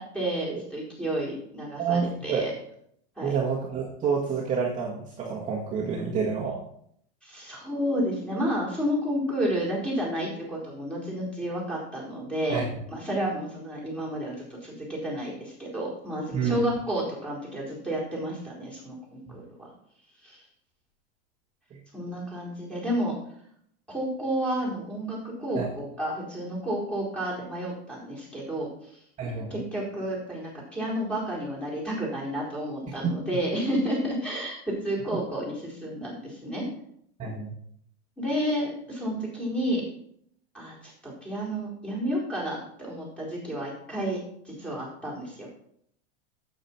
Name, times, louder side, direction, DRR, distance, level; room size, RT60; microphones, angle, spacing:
voice 1, 0.0-2.5 3.2-3.4 7.2-14.3 14.6-19.7 20.2-20.4 21.9-23.1 23.9-29.0 29.5-36.7 38.2-39.9 40.5-45.5, equal, 5° left, -6 dB, 4.2 m, -31 dB
voice 2, 1.8-2.4 3.2-6.6 12.5-12.6 16.3-16.5 21.7-21.8 25.5-25.7 29.2-29.5 37.2-37.5, right 6 dB, 20° right, -5 dB, 1.8 m, -28 dB
9.2 x 8.2 x 4.5 m, 0.68 s
supercardioid pair, 145°, 34 cm